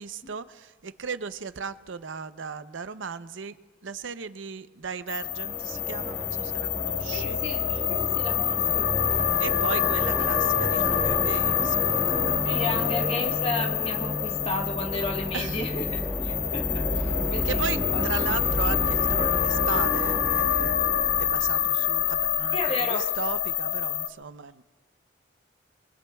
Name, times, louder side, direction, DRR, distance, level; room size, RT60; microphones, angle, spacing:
voice 1, 0.0-3.6 3.8-7.4 9.4-12.9 15.3-15.6 17.4-20.9 21.2-24.6, right 6 dB, 90° right, 12 dB, 0.6 m, -36 dB
sound 1, 5.1-24.1, left 10 dB, 70° left, 0.7 m, -27 dB
sound 2, 5.2-22.2, equal, 5° left, 1.0 m, -32 dB
voice 2, 7.1-8.9 12.4-18.2 22.5-23.0, left 1 dB, 30° left, 1 dB, 1.5 m, -33 dB
28.0 x 22.5 x 2.3 m, 1.4 s
head